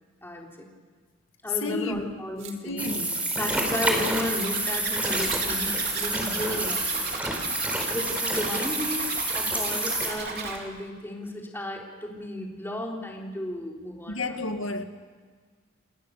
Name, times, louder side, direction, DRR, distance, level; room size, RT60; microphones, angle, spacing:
voice 1, 0.2-0.7 1.4-2.8 3.3-7.1 7.9-14.2, left 1 dB, 10° left, 3.7 m, -34 dB
voice 2, 1.6-2.0 2.6-3.4 14.1-14.8, left 2 dB, 80° left, 2.1 m, -31 dB
sound 1, 1.7-1.8 2.4-3.0 3.5-3.7 4.1-4.6 5.3-5.4 5.9-6.1, right 12 dB, 85° right, 2.1 m, -40 dB
sound 2, 2.8-10.1, right 1 dB, 10° right, 4.3 m, -28 dB
Zipper (clothing), 3.4-10.6, right 4 dB, 55° right, 4.1 m, -35 dB
29.5 x 20.5 x 6.7 m
head